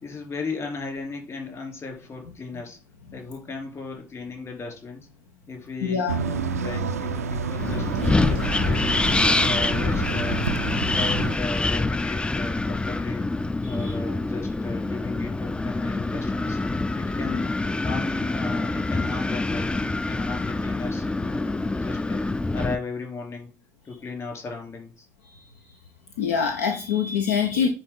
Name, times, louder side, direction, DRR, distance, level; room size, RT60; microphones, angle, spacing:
voice 1, 0.0-2.8 3.1-5.1 5.5-10.4 10.8-13.3 13.7-16.6 17.0-17.5 17.8-22.3 22.5-23.5 23.8-25.1, left 4 dB, 40° left, 2 dB, 3.3 m, -36 dB
voice 2, 5.8-6.2 13.6-13.9 26.2-27.7, left 7 dB, 75° left, 5 dB, 0.7 m, -24 dB
sound 1, 6.1-11.4, right 5 dB, 80° right, 0.4 m, -29 dB
Wind, 7.6-22.7, left 2 dB, 15° left, 0.4 m, -25 dB
9.8 x 4.1 x 3.8 m, 0.34 s
figure-of-eight pair, 50°, 8 cm